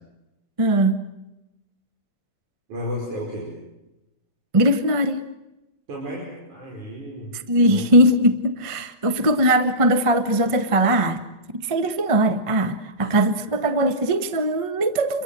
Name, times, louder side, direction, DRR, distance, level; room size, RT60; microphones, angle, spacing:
voice 1, 0.6-1.0 4.5-5.2 7.3-11.2 11.5-15.2, right 1 dB, 50° right, 0.3 m, -20 dB
voice 2, 2.7-3.5 5.9-7.3 7.7-7.9 13.0-13.1, equal, 80° right, 6.8 m, -33 dB
29.0 x 23.5 x 7.7 m
omnidirectional pair, 3.4 m